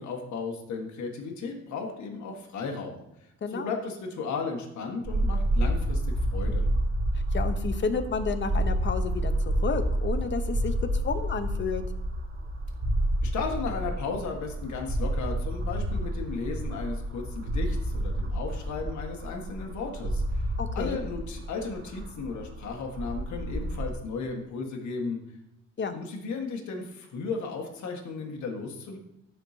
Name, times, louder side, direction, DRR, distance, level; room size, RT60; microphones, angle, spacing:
voice 1, 0.0-6.0 6.3-6.6 13.2-20.5 20.7-25.2 25.9-29.0, left 4 dB, 70° left, 2 dB, 1.6 m, -35 dB
sound 1, 5.1-23.9, right 1 dB, 40° right, 1.7 m, -29 dB
voice 2, 7.3-10.7 11.0-11.8 20.6-21.0 25.8-25.9, left 5 dB, 40° left, 9 dB, 0.9 m, -31 dB
12.5 x 4.6 x 2.8 m, 0.83 s
cardioid pair, 90°, 30 cm